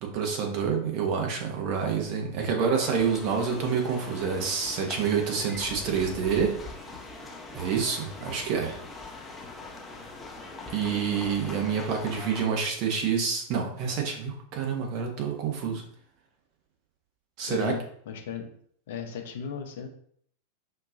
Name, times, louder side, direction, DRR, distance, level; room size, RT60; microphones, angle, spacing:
voice 1, 0.0-6.6 7.5-8.8 10.7-15.8 17.4-17.8, right 6 dB, 45° right, 1 dB, 1.0 m, -28 dB
sound 1, 2.8-12.4, left 3 dB, 15° left, 0.7 m, -42 dB
voice 2, 17.5-18.5 18.9-19.9, left 7 dB, 55° left, 4 dB, 0.7 m, -36 dB
5.8 x 2.7 x 2.6 m, 0.62 s
figure-of-eight pair, 90°, 0 cm